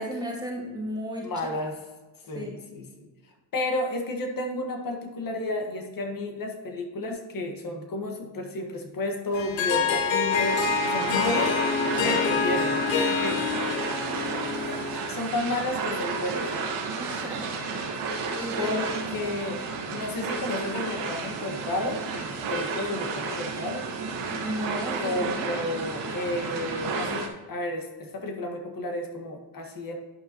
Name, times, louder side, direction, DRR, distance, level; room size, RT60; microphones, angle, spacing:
voice 1, 0.0-1.5 2.3-2.5 17.0-17.6 17.9-19.1 24.3-25.5, equal, 10° right, -2 dB, 2.0 m, -35 dB
voice 2, 1.2-1.8 2.3-3.1 3.5-11.5 12.0-13.4 13.8-13.9 14.7-14.8 15.1-16.5 18.6-18.9 19.1-19.6 19.9-23.9 25.0-30.0, left 2 dB, 45° left, 3 dB, 1.7 m, -32 dB
Harp, 9.3-15.1, left 5 dB, 65° left, 1.0 m, -26 dB
sound 1, 10.3-27.3, right 4 dB, 85° right, 1.4 m, -32 dB
11.0 x 5.5 x 3.0 m, 1.2 s
cardioid pair, 95°, 49 cm